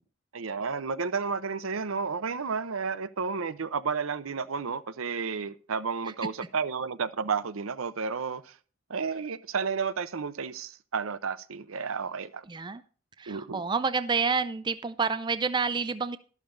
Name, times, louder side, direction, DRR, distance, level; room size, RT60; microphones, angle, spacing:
voice 1, 0.3-8.4 8.9-12.4 13.3-13.6, right 5 dB, 80° right, 0.7 m, -32 dB
voice 2, 12.5-12.8 13.2-16.2, right 5 dB, 20° right, 0.4 m, -29 dB
12.0 x 12.0 x 2.6 m
head